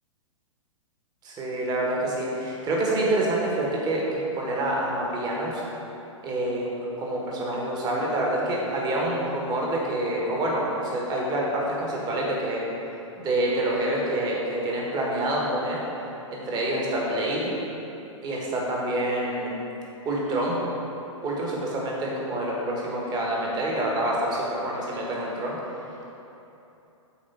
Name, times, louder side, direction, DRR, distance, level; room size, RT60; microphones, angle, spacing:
voice 1, 1.2-5.6 6.2-6.7 7.0-12.6 13.2-15.8 16.3-17.5 18.2-19.5 20.0-20.6 21.2-25.6, right 1 dB, 25° right, -3 dB, 1.4 m, -27 dB
7.4 x 3.8 x 5.5 m, 2.9 s
figure-of-eight pair, 110°, 17 cm